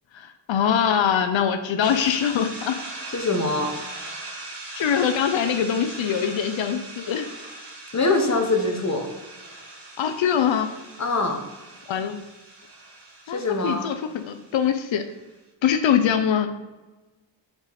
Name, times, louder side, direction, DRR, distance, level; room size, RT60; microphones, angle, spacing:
voice 1, 0.1-2.8 4.8-7.3 10.0-10.7 11.9-12.2 13.3-15.0 15.6-16.5, left 8 dB, 90° left, 8 dB, 0.6 m, -23 dB
sound 1, 1.8-15.2, right 2 dB, 65° right, 1.2 m, -40 dB
voice 2, 3.1-3.7 7.9-9.1 11.0-11.4 13.3-13.8, left 2 dB, 40° left, 3 dB, 1.0 m, -23 dB
5.1 x 4.8 x 4.0 m, 1.1 s
wide cardioid pair, 100°, 44 cm